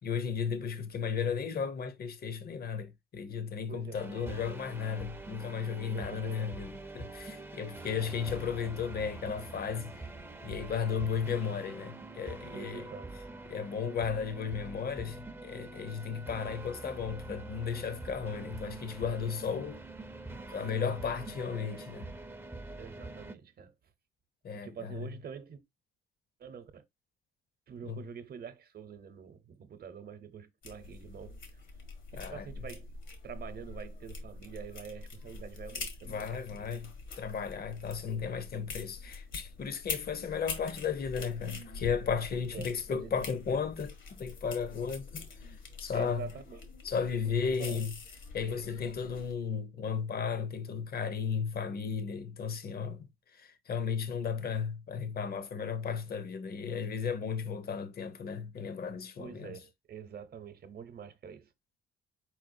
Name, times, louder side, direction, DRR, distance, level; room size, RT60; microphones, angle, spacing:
voice 1, 0.0-10.1 10.4-12.9 13.5-19.8 20.3-22.1 24.4-25.1 27.8-28.0 32.1-32.5 36.0-46.3 46.8-47.9 48.3-59.6, left 6 dB, 50° left, 0.9 m, -35 dB
voice 2, 3.7-4.5 5.9-6.5 12.5-13.3 22.8-23.7 24.5-25.6 26.4-26.8 27.7-31.6 32.1-32.9 33.2-36.7 42.5-43.3 45.9-46.7 47.2-47.3 47.6-47.8 48.4-49.3 59.2-61.5, right 7 dB, 50° right, 0.9 m, -46 dB
sound 1, 3.9-23.3, right 2 dB, 10° right, 0.6 m, -45 dB
sound 2, 30.6-49.3, left 4 dB, 70° left, 1.5 m, -45 dB
4.7 x 4.3 x 2.6 m
cardioid pair, 90°, 20 cm